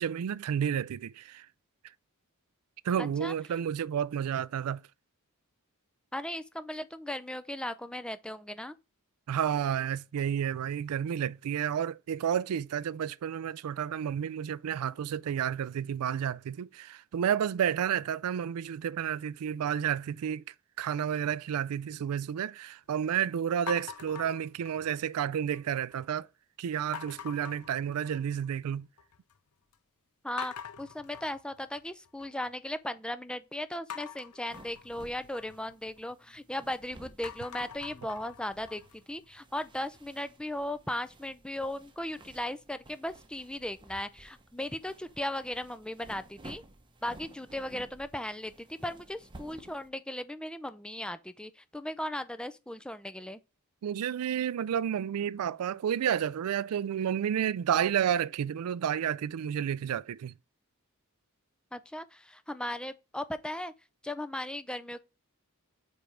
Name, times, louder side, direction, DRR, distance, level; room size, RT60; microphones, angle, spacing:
voice 1, 0.0-1.5 2.8-4.8 9.3-20.4 20.8-26.3 26.6-28.9 53.8-60.3, right 9 dB, 75° right, 0.3 m, -31 dB
voice 2, 3.0-3.3 6.1-8.7 30.2-46.6 47.0-53.4 61.7-63.7 64.0-65.0, left 1 dB, 5° left, 0.5 m, -37 dB
sound 1, 23.7-25.1 25.5-26.1 26.9-28.5 28.8-29.4 29.7-29.8 30.4-32.5 33.9-36.7 37.1-40.0, left 7 dB, 75° left, 0.7 m, -45 dB
sound 2, 34.5-49.9, right 1 dB, 20° right, 0.9 m, -54 dB
5.1 x 4.5 x 4.9 m
head